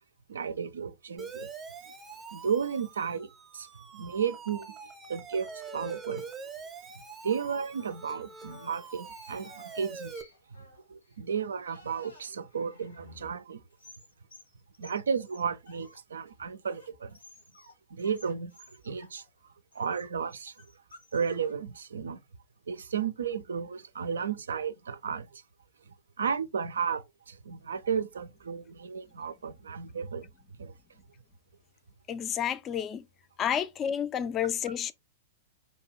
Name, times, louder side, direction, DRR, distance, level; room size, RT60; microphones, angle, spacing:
voice 1, 0.3-1.5 2.3-3.3 3.5-3.7 3.9-4.8 5.1-6.3 7.2-10.1 10.9-13.6 14.8-17.2 17.9-18.6 18.8-19.2 19.7-20.6 21.1-22.2 22.7-25.4 26.2-30.3 30.6-30.7, right 6 dB, 75° right, 0.3 m, -33 dB
Siren, 1.2-10.2, right 5 dB, 20° right, 0.6 m, -44 dB
sound 1, 7.8-13.4 13.7-16.0 16.3-17.7 18.0-19.3 19.7-21.5, left 2 dB, 85° left, 1.2 m, -55 dB
voice 2, 32.1-33.1 33.4-34.9, left 9 dB, 30° left, 0.3 m, -30 dB
2.7 x 2.2 x 3.1 m
figure-of-eight pair, 100°, 0 cm